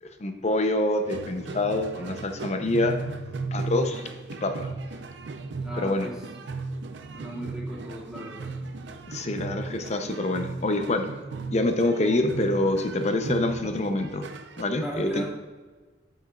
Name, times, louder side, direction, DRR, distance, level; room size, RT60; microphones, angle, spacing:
voice 1, 0.0-3.0 3.5-4.0 4.4-4.7 5.8-6.1 9.1-11.1 11.5-14.3 14.6-15.2, left 2 dB, 40° left, 6 dB, 0.7 m, -26 dB
sound 1, 1.1-14.6, right 3 dB, 75° right, 0.5 m, -36 dB
voice 2, 5.6-6.2 7.1-8.5 14.8-15.2, equal, 5° right, -7 dB, 2.0 m, -37 dB
7.9 x 7.1 x 2.4 m, 1.3 s
head